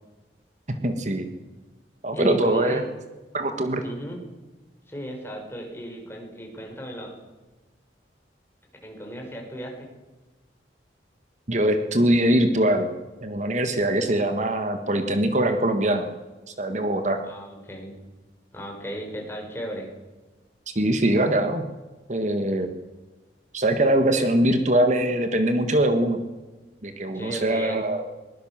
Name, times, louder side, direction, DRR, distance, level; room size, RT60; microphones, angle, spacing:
voice 1, 0.8-1.2 2.0-2.8 3.3-3.8 11.5-12.9 13.2-16.1 16.5-17.2 20.7-21.6 22.1-22.7 23.5-26.2 26.8-28.0, right 1 dB, 40° right, 7 dB, 1.6 m, -22 dB
voice 2, 2.1-2.8 3.8-4.2 4.9-7.1 8.8-9.9 17.2-18.0 18.5-19.9 27.1-27.8, right 1 dB, 15° left, 1 dB, 5.4 m, -35 dB
22.0 x 21.0 x 7.4 m, 1.2 s
head